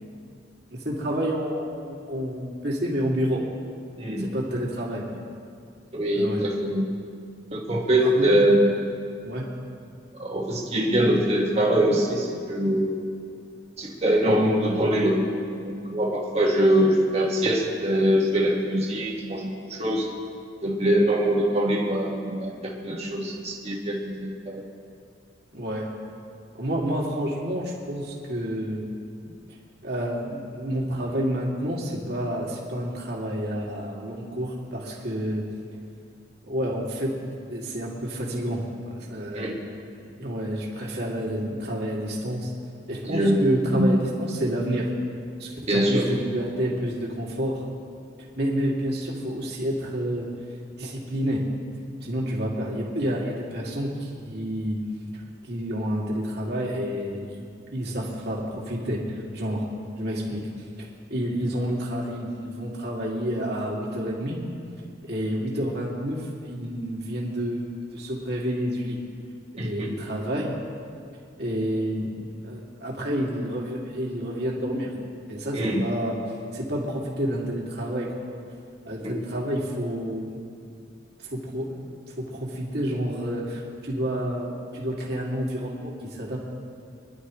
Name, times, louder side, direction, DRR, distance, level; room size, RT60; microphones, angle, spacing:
voice 1, 0.7-3.4 4.2-5.2 6.1-6.4 8.0-8.3 9.2-9.4 25.5-25.9 26.6-28.9 29.8-35.5 36.5-39.6 40.0-42.5 42.9-44.9 45.4-47.6 48.4-50.3 50.8-51.4 52.0-54.8 55.5-57.5 57.7-59.6 60.0-60.5 61.1-64.4 65.1-69.0 69.6-70.5 71.4-74.9 75.3-76.2 76.5-78.1 78.8-80.3 81.3-81.8 82.2-86.4, equal, 55° right, -3 dB, 2.6 m, -29 dB
voice 2, 5.9-6.8 7.5-8.8 10.1-13.0 13.8-20.1 20.6-24.6 39.3-39.5 43.0-44.0 45.7-46.1 69.6-69.9 75.5-75.8 79.0-79.1, right 1 dB, 30° right, -3 dB, 1.8 m, -23 dB
24.5 x 11.5 x 3.2 m, 2.4 s
head